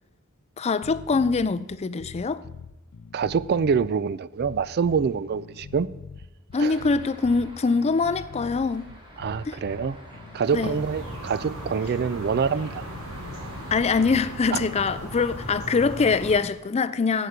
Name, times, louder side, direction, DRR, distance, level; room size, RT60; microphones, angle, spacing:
voice 1, 0.6-2.4 6.5-8.9 9.5-9.6 10.5-10.8 13.7-17.3, left 4 dB, 30° left, 0.4 m, -23 dB
sound 1, 0.8-10.4, left 5 dB, 90° left, 0.6 m, -43 dB
voice 2, 3.1-5.9 6.6-6.8 9.2-10.0 10.3-12.8 14.5-14.6, right 6 dB, 45° right, 0.4 m, -25 dB
sound 2, 6.5-14.2, equal, 25° right, 2.4 m, -47 dB
sound 3, 10.4-16.4, equal, 80° right, 3.0 m, -37 dB
11.0 x 8.2 x 5.0 m
head